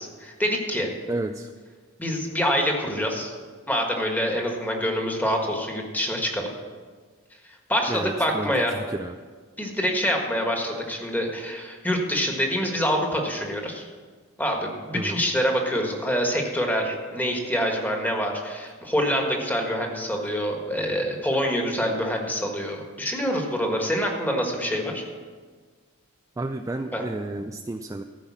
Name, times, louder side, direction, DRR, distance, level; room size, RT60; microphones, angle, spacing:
voice 1, 0.0-0.9 2.0-3.3 3.7-6.5 7.7-8.7 9.6-13.9 14.4-25.0 26.9-27.0, equal, 10° left, 1 dB, 1.5 m, -26 dB
voice 2, 1.1-1.5 7.9-9.2 14.9-15.2 26.4-28.0, right 2 dB, 15° right, 6 dB, 0.3 m, -31 dB
14.0 x 5.5 x 7.2 m, 1.5 s
head